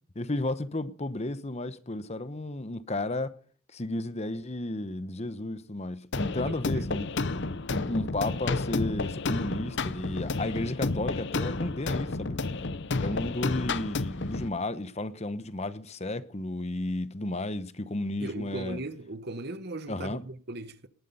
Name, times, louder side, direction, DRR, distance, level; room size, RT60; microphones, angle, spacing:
voice 1, 0.1-3.4 3.7-7.1 7.7-12.4 13.0-18.8 19.9-20.2, left 2 dB, 30° left, 0.9 m, -33 dB
sound 1, 6.1-14.5, left 3 dB, 50° left, 0.8 m, -31 dB
voice 2, 6.4-6.9 18.2-20.9, right 2 dB, 45° right, 1.1 m, -38 dB
19.5 x 12.0 x 5.4 m
head